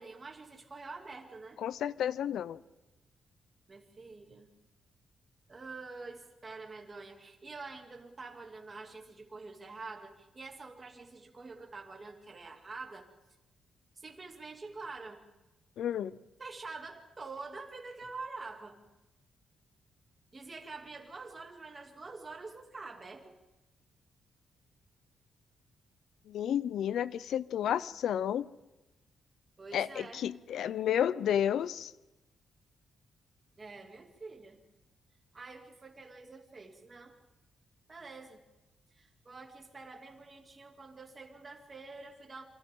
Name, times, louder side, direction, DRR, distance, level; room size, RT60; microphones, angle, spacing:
voice 1, 0.0-1.6 3.7-4.5 5.5-13.1 14.0-15.2 16.4-18.8 20.3-23.3 29.6-30.2 33.6-34.6 35.3-37.2 37.9-38.4 39.0-42.4, right 3 dB, 25° right, 2.7 m, -46 dB
voice 2, 1.6-2.6 15.8-16.2 26.3-28.5 29.7-31.9, left 10 dB, 80° left, 0.6 m, -31 dB
28.0 x 25.0 x 3.8 m
cardioid pair, 125°, 0 cm